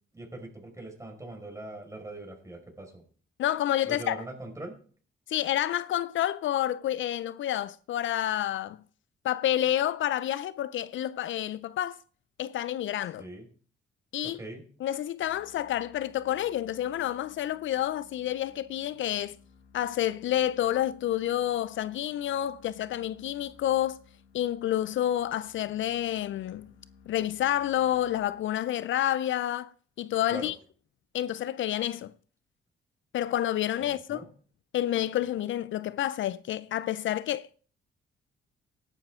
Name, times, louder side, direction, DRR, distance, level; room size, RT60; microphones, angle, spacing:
voice 1, 0.1-3.0 3.8-4.8 13.2-13.5 14.2-14.6 30.3-30.5 33.8-34.3, right 1 dB, 15° right, 5.1 m, -41 dB
voice 2, 3.4-4.2 5.3-8.8 9.2-12.0 12.4-13.2 14.1-14.4 14.8-19.4 19.7-24.0 24.3-26.7 27.1-29.7 30.0-30.5 31.1-32.1 33.1-34.3 34.7-37.6, left 12 dB, 70° left, 0.5 m, -29 dB
sound 1, 15.2-28.6, left 5 dB, 85° left, 1.4 m, -58 dB
15.5 x 11.5 x 3.7 m
supercardioid pair, 65°, 21 cm